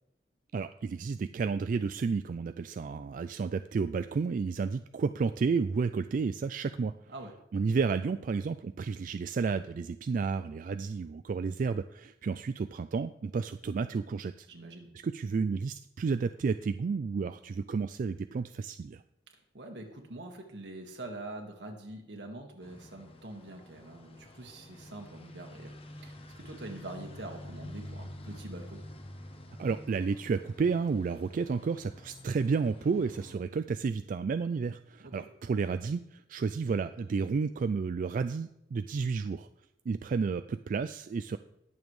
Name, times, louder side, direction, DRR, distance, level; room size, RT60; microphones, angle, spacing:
voice 1, 0.5-6.9 7.5-14.5 15.0-19.0 29.6-39.5 39.9-41.4, right 5 dB, 50° right, 11 dB, 0.3 m, -31 dB
voice 2, 14.5-14.9 19.5-28.8 35.0-35.3, right 2 dB, 85° right, 2 dB, 1.8 m, -44 dB
sound 1, 22.6-33.4, left 1 dB, 35° left, 0.9 m, -48 dB
19.0 x 7.2 x 3.2 m, 0.80 s
head